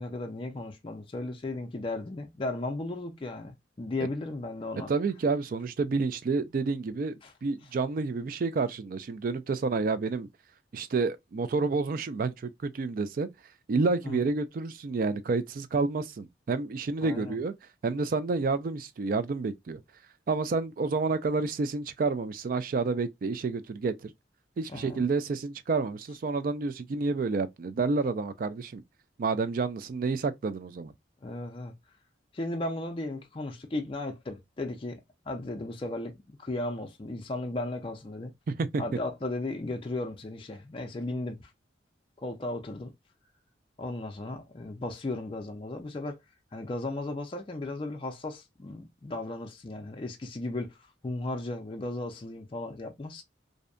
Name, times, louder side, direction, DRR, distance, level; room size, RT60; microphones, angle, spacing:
voice 1, 0.0-4.9 7.2-7.3 14.0-14.2 17.0-17.4 24.7-25.0 31.2-31.7 32.3-35.0 35.3-38.3 38.8-41.5 42.2-42.9 43.8-46.2 46.5-53.2, left 2 dB, 30° left, 0.4 m, -35 dB
voice 2, 4.9-10.3 10.7-13.3 13.7-17.5 17.8-19.8 20.3-24.1 24.6-28.8 29.2-30.9 38.5-38.8, right 4 dB, 50° right, 0.3 m, -29 dB
2.6 x 2.1 x 2.4 m
head